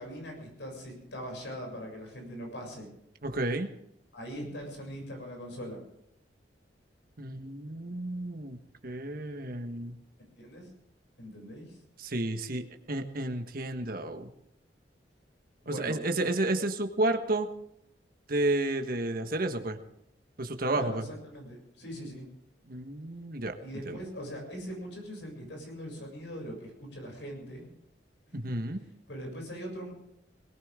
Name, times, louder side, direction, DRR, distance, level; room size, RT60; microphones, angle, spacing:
voice 1, 0.0-2.9 4.1-5.8 10.4-10.7 11.2-11.8 15.6-16.3 20.7-22.3 23.6-27.6 28.3-28.5 29.1-29.9, equal, 80° left, 1 dB, 7.2 m, -41 dB
voice 2, 3.2-3.7 7.2-8.6 8.8-9.9 12.0-14.3 15.7-17.5 18.3-19.8 20.4-21.1 22.7-23.5 23.8-24.0 28.3-28.8, right 2 dB, 55° right, 6 dB, 1.4 m, -31 dB
21.0 x 18.5 x 3.7 m, 0.77 s
head